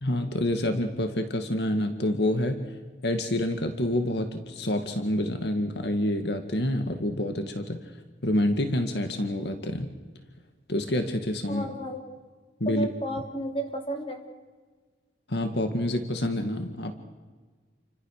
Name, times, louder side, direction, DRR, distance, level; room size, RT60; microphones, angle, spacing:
voice 1, 0.0-2.7 3.0-7.8 8.2-9.9 10.7-11.7 12.6-12.9 15.3-16.9, left 1 dB, 80° left, 6 dB, 2.0 m, -27 dB
voice 2, 11.5-12.0 12.6-14.2, right 1 dB, 30° left, 3 dB, 3.7 m, -32 dB
29.5 x 25.0 x 6.7 m, 1.4 s
head